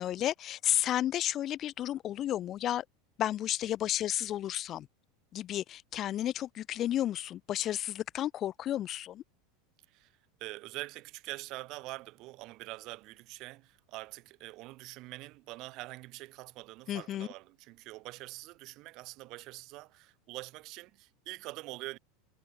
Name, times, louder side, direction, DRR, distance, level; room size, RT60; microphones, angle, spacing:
voice 1, 0.0-2.8 3.2-4.9 5.3-9.2 16.9-17.3, left 12 dB, 40° left, 1.3 m, -32 dB
voice 2, 10.4-22.0, right 20 dB, 55° right, 2.2 m, -44 dB
hypercardioid pair, 90°, 0 cm